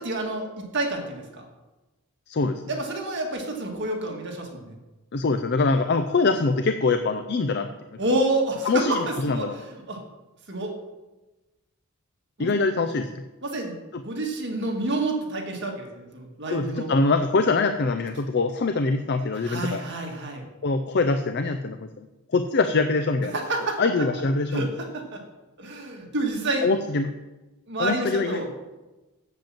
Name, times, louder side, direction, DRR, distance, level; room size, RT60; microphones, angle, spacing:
voice 1, 0.0-1.5 2.7-4.7 8.0-10.0 10.5-10.7 12.4-12.5 13.4-16.9 19.4-20.4 23.3-23.8 24.5-25.2 25.6-26.6 27.7-28.5, right 2 dB, 50° right, 1 dB, 1.8 m, -29 dB
voice 2, 2.3-2.6 5.1-7.7 8.6-9.5 12.4-13.2 13.9-14.0 16.5-19.8 20.6-23.4 23.8-24.7 26.6-27.1 27.8-28.4, left 3 dB, 50° left, 8 dB, 0.5 m, -24 dB
7.7 x 7.4 x 7.4 m, 1.1 s
head